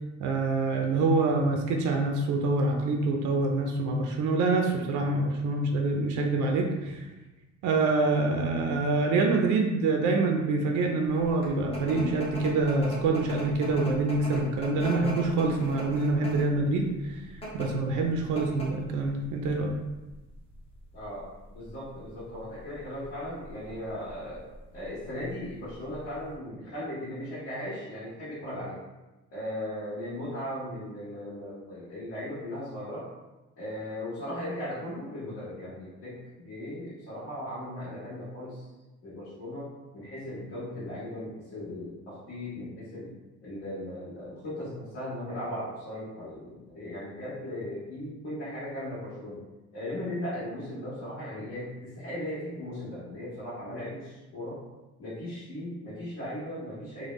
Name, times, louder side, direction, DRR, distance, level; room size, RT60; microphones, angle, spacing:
voice 1, 0.2-7.1 7.6-17.2 17.5-19.8, right 3 dB, 80° right, 2 dB, 0.5 m, -26 dB
sound 1, 11.1-26.3, equal, 20° left, 0.7 m, -41 dB
voice 2, 20.9-24.4 24.7-28.8 29.3-33.1 33.6-38.7 39.0-43.1 43.4-49.4 49.7-54.6 55.0-57.1, left 1 dB, 55° left, -11 dB, 1.3 m, -37 dB
3.3 x 2.2 x 3.1 m, 1.1 s
cardioid pair, 170°, 30 cm